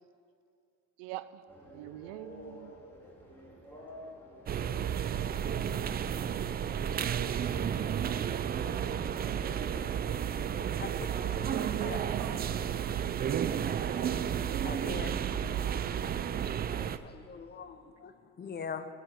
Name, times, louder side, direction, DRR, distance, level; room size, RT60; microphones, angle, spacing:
voice 1, 1.0-2.7, right 15 dB, 85° right, 14 dB, 0.5 m, -46 dB
sound 1, 1.5-11.7, equal, 5° left, 2.7 m, -52 dB
sound 2, 4.5-17.0, right 8 dB, 25° right, 0.4 m, -32 dB
sound 3, 9.1-15.6, left 5 dB, 60° left, 2.7 m, -58 dB
voice 2, 11.5-13.6, right 8 dB, 45° right, 9 dB, 1.0 m, -47 dB
voice 3, 14.6-15.2 16.8-18.9, left 6 dB, 30° left, 11 dB, 0.7 m, -43 dB
14.5 x 5.0 x 8.0 m, 2.4 s
supercardioid pair, 95°, 36 cm